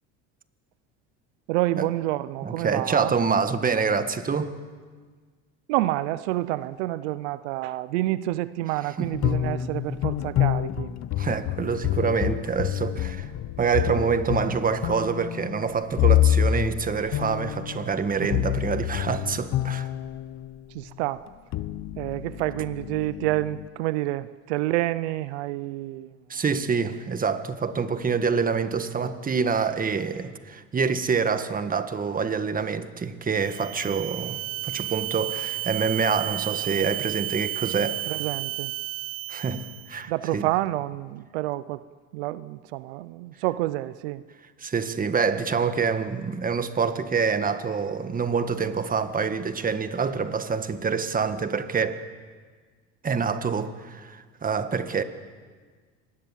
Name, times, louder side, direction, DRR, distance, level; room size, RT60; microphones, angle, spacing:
voice 1, 1.5-3.1 5.7-10.9 20.7-21.2 22.0-26.1 38.1-38.7 40.1-41.8 42.1-44.2, right 17 dB, 85° right, 0.7 m, -28 dB
voice 2, 2.4-4.5 9.0-9.1 11.2-13.3 13.6-19.9 26.3-34.4 34.6-38.0 39.3-40.5 44.6-52.0 53.0-55.0, right 5 dB, 25° right, 1.7 m, -26 dB
sound 1, 9.1-20.6 21.3-23.7, left 12 dB, 55° left, 0.9 m, -27 dB
sound 2, 33.4-40.0, right 20 dB, 60° right, 0.8 m, -32 dB
24.5 x 20.5 x 7.5 m
supercardioid pair, 95°, 33 cm